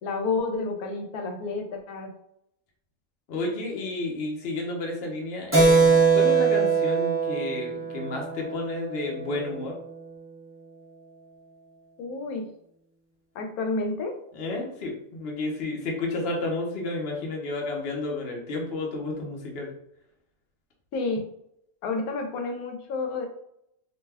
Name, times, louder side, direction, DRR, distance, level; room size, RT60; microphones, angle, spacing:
voice 1, 0.0-2.1 12.0-12.5 13.3-14.2 20.9-21.3 21.8-23.3, left 3 dB, 85° left, 4 dB, 1.1 m, -30 dB
voice 2, 3.3-9.8 14.3-19.7, left 2 dB, 50° left, 0 dB, 0.8 m, -31 dB
Keyboard (musical), 5.5-9.6, right 4 dB, 20° right, 0.3 m, -22 dB
2.7 x 2.2 x 3.3 m, 0.75 s
omnidirectional pair, 1.5 m